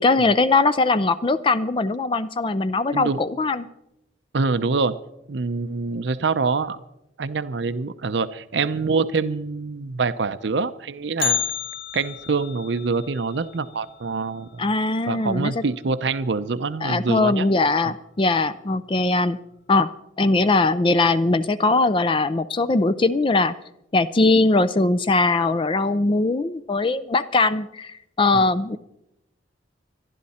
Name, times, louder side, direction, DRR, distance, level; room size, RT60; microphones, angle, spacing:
voice 1, 0.0-3.7 14.6-15.5 16.8-19.4 19.7-19.9 20.2-23.5 23.9-28.8, left 3 dB, 25° left, 14 dB, 0.4 m, -20 dB
voice 2, 4.3-5.0 5.3-6.8 7.2-11.4 11.9-14.6 15.1-17.5 17.8-17.9 28.3-28.5, right 4 dB, 65° right, 12 dB, 0.6 m, -25 dB
Bell, 11.2-15.3 15.6-15.7 16.2-16.3 17.1-17.2 17.9-18.2 18.6-18.7, left 8 dB, 85° left, 1.2 m, -31 dB
26.0 x 11.0 x 4.2 m, 0.84 s
head